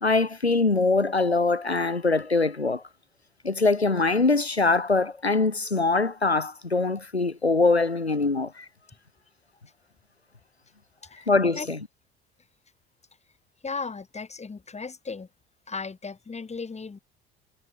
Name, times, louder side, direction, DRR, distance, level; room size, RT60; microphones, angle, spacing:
voice 1, 0.0-2.8 3.4-8.7 11.3-11.8, left 3 dB, 90° left, 2.2 m, -23 dB
voice 2, 13.6-15.3 15.7-17.0, left 4 dB, 20° left, 6.7 m, -36 dB
figure-of-eight pair, 60°, 31 cm